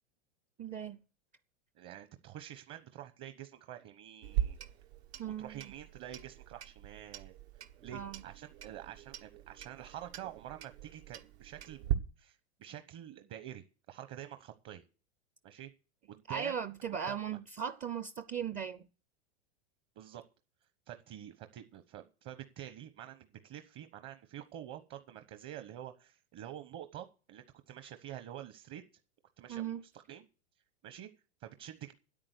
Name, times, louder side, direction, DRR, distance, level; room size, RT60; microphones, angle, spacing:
voice 1, 0.6-1.0 5.2-5.7 7.9-8.2 16.3-18.9 29.5-29.8, right 8 dB, 25° right, 0.6 m, -38 dB
voice 2, 1.7-4.6 5.2-7.3 7.8-11.9 12.2-14.8 15.4-15.7 16.1-16.5 17.1-17.4 20.0-20.2 20.9-28.8 29.4-29.8 30.1-30.3 30.8-31.1 31.4-31.9, right 11 dB, 40° right, 1.1 m, -47 dB
Clock, 4.2-11.9, right 12 dB, 75° right, 1.5 m, -40 dB
10.0 x 8.9 x 8.2 m
hypercardioid pair, 125°, 33 cm